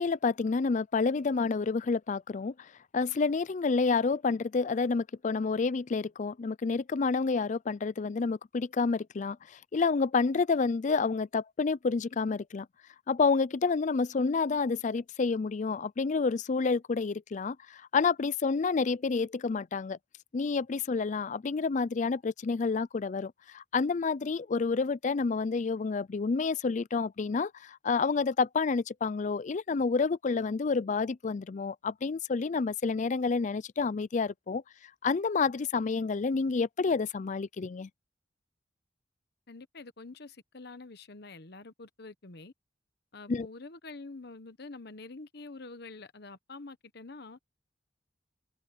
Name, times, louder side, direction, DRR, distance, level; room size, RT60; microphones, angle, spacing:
voice 1, 0.0-2.5 2.9-9.4 9.7-12.7 13.1-20.0 20.3-34.6 35.0-37.9 43.3-43.5, left 4 dB, 40° left, 0.4 m, -29 dB
voice 2, 39.5-42.5 43.1-47.4, left 3 dB, 60° left, 1.1 m, -46 dB
head